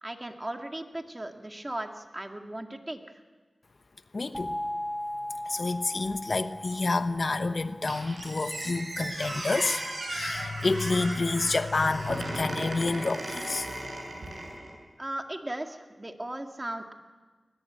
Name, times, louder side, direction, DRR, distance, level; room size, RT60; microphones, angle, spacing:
voice 1, 0.0-3.2 15.0-16.9, right 1 dB, 25° right, 4 dB, 2.0 m, -37 dB
voice 2, 4.1-4.5 5.5-9.8 10.1-13.7, left 3 dB, 60° left, 10 dB, 1.0 m, -28 dB
sound 1, 4.3-9.1, left 1 dB, 5° left, 2.4 m, -38 dB
Squeak, 7.9-14.8, right 1 dB, 65° right, 7.7 m, -36 dB
21.0 x 20.5 x 8.8 m, 1.4 s
wide cardioid pair, 70°, 0 cm